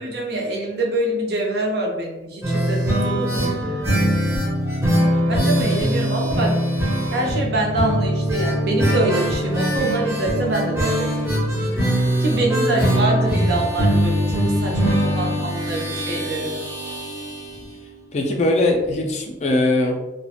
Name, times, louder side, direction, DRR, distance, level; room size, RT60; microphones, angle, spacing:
voice 1, 0.0-3.6 5.3-6.6 7.1-11.3 12.2-16.5, right 1 dB, 60° right, -1 dB, 0.5 m, -25 dB
sound 1, 2.4-18.1 18.3-18.4 18.7-18.8, equal, 15° right, 0.5 m, -22 dB
voice 2, 18.1-20.0, left 2 dB, 35° left, 2 dB, 0.3 m, -21 dB
2.4 x 2.1 x 2.8 m, 1.0 s
head